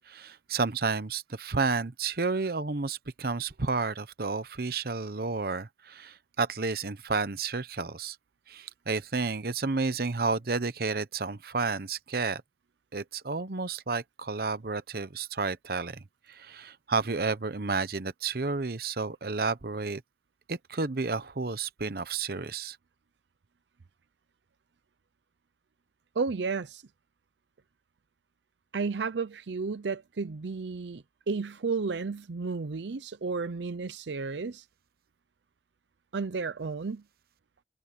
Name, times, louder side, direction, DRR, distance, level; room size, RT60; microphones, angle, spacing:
voice 1, 0.1-8.2 8.5-12.4 12.9-16.0 16.3-20.0 20.5-22.8, right 4 dB, 55° right, 0.9 m, -31 dB
voice 2, 26.1-26.8 28.7-34.6 36.1-37.0, right 4 dB, 85° right, 0.6 m, -32 dB
head